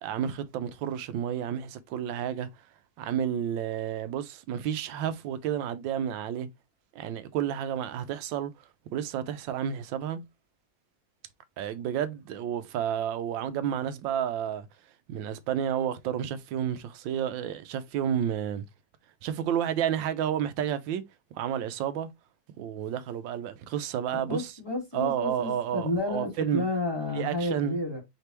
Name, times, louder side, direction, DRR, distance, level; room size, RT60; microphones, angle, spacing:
voice 1, 0.0-2.5 3.0-6.5 6.9-8.5 8.9-10.2 11.6-14.7 15.1-18.6 19.2-21.0 21.3-22.1 22.6-24.5 24.9-26.6 27.1-27.8, right 9 dB, 85° right, 1.3 m, -31 dB
voice 2, 24.1-28.0, left 2 dB, 15° left, 1.4 m, -31 dB
4.9 x 3.3 x 2.9 m
omnidirectional pair, 2.0 m